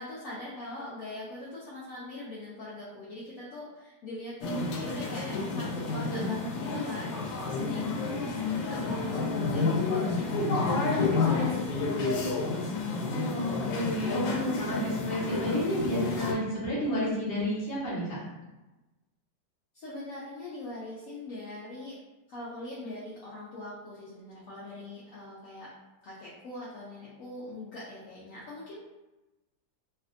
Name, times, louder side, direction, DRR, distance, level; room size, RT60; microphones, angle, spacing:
voice 1, 0.0-10.4 10.7-12.3 12.9-13.1 19.7-22.0 22.3-25.7 26.0-28.8, left 1 dB, 65° left, -7 dB, 0.9 m, -42 dB
sound 1, 4.4-16.3, left 3 dB, 90° left, 1.3 m, -30 dB
voice 2, 13.1-14.2 14.5-18.2, equal, 40° left, -8 dB, 1.2 m, -31 dB
3.3 x 2.6 x 2.4 m, 1.1 s
omnidirectional pair, 2.0 m